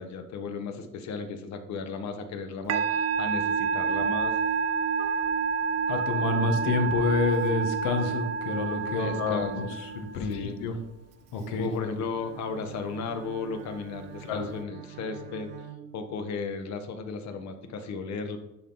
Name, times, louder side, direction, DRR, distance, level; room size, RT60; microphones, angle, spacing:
voice 1, 0.0-4.4 6.4-6.6 8.9-9.8 10.2-10.6 11.6-15.5 15.9-18.4, left 4 dB, 60° left, 7 dB, 1.1 m, -35 dB
Musical instrument, 2.7-10.3, right 5 dB, 55° right, 0.6 m, -28 dB
voice 2, 5.9-10.7 11.3-11.7 14.2-14.5, left 3 dB, 85° left, 5 dB, 1.4 m, -28 dB
Bowed string instrument, 11.9-16.5, right 10 dB, 85° right, 0.9 m, -46 dB
11.5 x 3.9 x 4.0 m, 0.93 s
cardioid pair, 115°, 31 cm